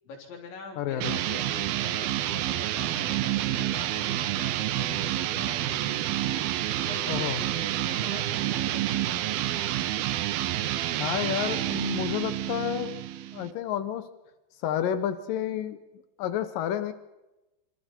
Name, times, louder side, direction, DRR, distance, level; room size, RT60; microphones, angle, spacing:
voice 1, 0.0-6.0 6.8-9.7, left 5 dB, 70° left, 0 dB, 6.0 m, -44 dB
voice 2, 0.8-1.1 7.1-7.4 11.0-13.0 13.3-14.0 14.6-15.8 16.2-16.9, left 10 dB, 90° left, 10 dB, 1.9 m, -30 dB
sound 1, 1.0-13.5, right 13 dB, 90° right, 2.1 m, -29 dB
27.0 x 27.0 x 4.5 m, 1.0 s
omnidirectional pair, 5.6 m